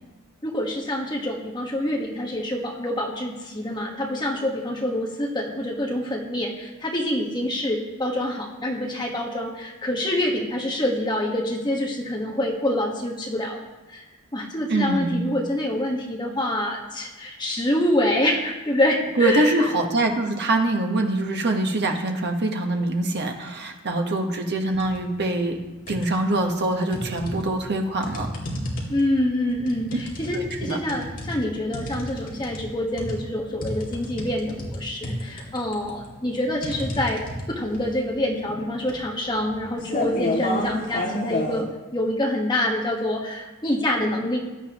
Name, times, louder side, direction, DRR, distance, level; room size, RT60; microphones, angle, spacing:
voice 1, 0.4-13.6 13.9-14.0 14.3-19.7 28.9-41.7 41.9-44.4, left 1 dB, 20° left, -1 dB, 1.5 m, -26 dB
voice 2, 14.7-15.4 19.2-25.6 25.9-28.3 30.3-30.8, right 2 dB, 50° right, 3 dB, 1.3 m, -24 dB
sound 1, 24.7-25.0 25.4-26.4 26.9-41.6, left 1 dB, 40° left, 2.4 m, -31 dB
16.0 x 11.5 x 3.0 m, 1.2 s
head